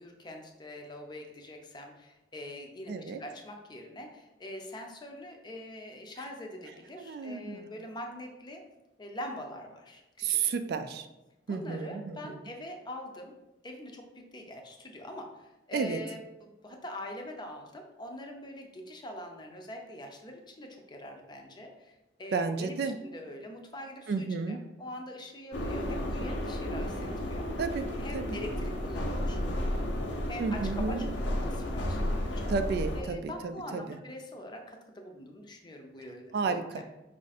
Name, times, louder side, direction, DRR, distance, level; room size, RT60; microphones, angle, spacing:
voice 1, 0.0-8.6 9.0-10.4 11.5-13.3 13.6-14.0 14.3-27.5 28.0-29.9 30.3-32.5 32.9-36.8, left 1 dB, 25° left, 3 dB, 0.6 m, -44 dB
voice 2, 2.9-3.2 7.0-7.8 10.2-11.1 11.5-12.4 15.7-16.0 22.3-23.0 24.1-24.6 27.6-27.9 28.1-28.3 30.4-31.1 32.5-34.0 36.3-36.8, right 5 dB, 60° right, 9 dB, 0.3 m, -32 dB
sound 1, 25.5-33.0, left 1 dB, 85° left, 0.7 m, -32 dB
4.9 x 2.5 x 4.1 m, 0.98 s
head